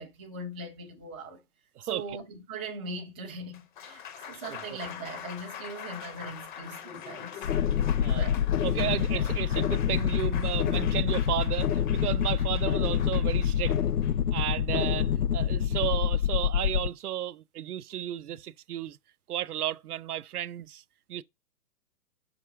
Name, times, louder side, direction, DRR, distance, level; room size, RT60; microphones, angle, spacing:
voice 1, 0.0-1.4 1.8-7.4 8.1-8.4 14.7-14.9, right 2 dB, 10° right, 0.4 m, -40 dB
voice 2, 1.8-2.2 4.5-4.8 8.0-8.3 8.6-13.8 14.3-15.1 15.3-19.0 19.3-20.8 21.1-21.2, right 11 dB, 80° right, 0.5 m, -33 dB
Applause, 3.4-15.6, left 8 dB, 35° left, 0.6 m, -44 dB
sound 1, 7.4-16.9, left 9 dB, 85° left, 0.6 m, -26 dB
5.9 x 3.6 x 4.4 m
figure-of-eight pair, 125°, 45 cm